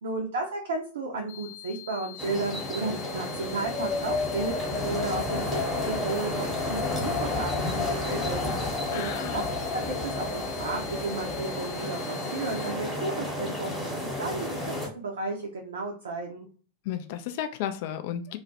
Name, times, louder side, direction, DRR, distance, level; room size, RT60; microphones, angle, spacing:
voice 1, 0.0-4.5 4.8-8.5 8.9-9.4 9.7-13.9 14.2-16.5, right 3 dB, 65° right, 1 dB, 0.4 m, -33 dB
sound 1, 1.3-12.7, left 15 dB, 70° left, 0.7 m, -45 dB
sound 2, 2.2-14.9, left 1 dB, ahead, 0.9 m, -33 dB
Wind, 3.3-11.8, left 5 dB, 30° left, 0.7 m, -34 dB
voice 2, 8.9-9.5 16.8-18.4, left 10 dB, 50° left, 8 dB, 0.3 m, -33 dB
2.3 x 2.0 x 2.7 m, 0.40 s
figure-of-eight pair, 90°, 0 cm